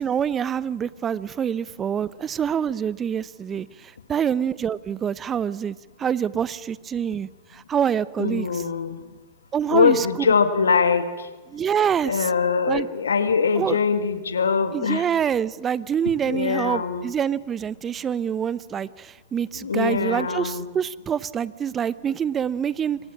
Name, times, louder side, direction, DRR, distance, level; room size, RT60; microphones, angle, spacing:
voice 1, 0.0-8.6 9.5-10.3 11.5-12.3 12.7-12.9 13.5-13.8 14.7-23.0, right 8 dB, 25° right, 19 dB, 0.8 m, -26 dB
voice 2, 8.2-9.0 9.7-11.3 12.0-15.0 16.2-17.1 19.6-20.7, left 5 dB, 85° left, 10 dB, 1.9 m, -22 dB
27.0 x 24.5 x 6.1 m, 1.3 s
hypercardioid pair, 95°, 0 cm